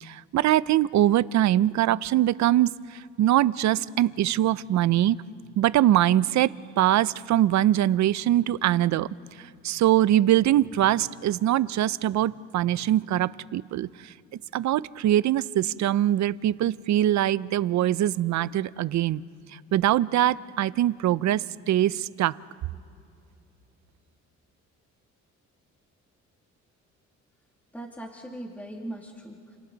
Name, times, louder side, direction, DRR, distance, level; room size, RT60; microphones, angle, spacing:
voice 1, 0.0-5.2 5.6-9.1 9.4-14.1 14.5-19.2 19.7-22.4, right 13 dB, 65° right, 18 dB, 0.6 m, -23 dB
voice 2, 27.7-29.6, right 1 dB, 5° left, -1 dB, 2.6 m, -39 dB
30.0 x 29.0 x 4.0 m, 2.6 s
cardioid pair, 90°, 30 cm